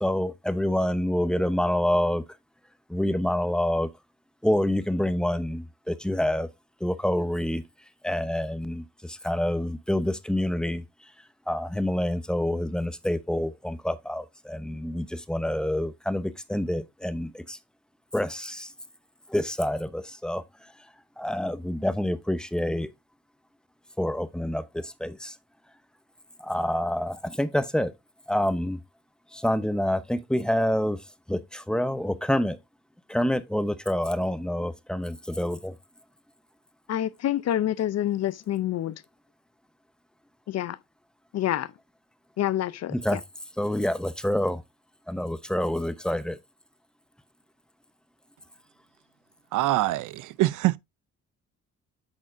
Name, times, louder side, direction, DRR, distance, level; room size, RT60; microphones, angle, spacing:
voice 1, 0.0-2.2 2.9-3.9 4.4-6.5 6.8-7.6 8.0-10.8 11.5-17.6 18.1-18.7 19.3-20.4 21.2-22.9 24.0-25.3 26.4-27.9 28.3-28.8 29.3-31.0 31.3-32.6 33.1-35.7 42.9-43.2 43.6-44.6 45.1-46.4, left 1 dB, 5° left, 0.8 m, -27 dB
voice 2, 36.9-38.9 40.5-40.8 41.3-41.7 42.4-42.9, left 12 dB, 55° left, 0.6 m, -27 dB
voice 3, 49.5-50.8, right 17 dB, 85° right, 0.5 m, -24 dB
8.8 x 6.2 x 2.6 m
cardioid pair, 90°, 30 cm